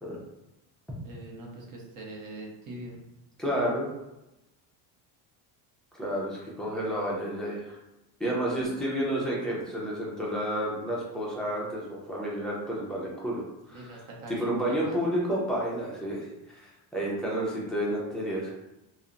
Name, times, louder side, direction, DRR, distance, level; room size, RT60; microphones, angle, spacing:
voice 1, 1.0-3.0 8.8-8.9 13.7-15.0, right 2 dB, 45° right, -1 dB, 0.7 m, -43 dB
voice 2, 3.4-3.9 6.0-7.8 8.2-18.7, right 1 dB, ahead, -6 dB, 0.3 m, -31 dB
2.7 x 2.1 x 2.4 m, 0.95 s
cardioid pair, 140°, 48 cm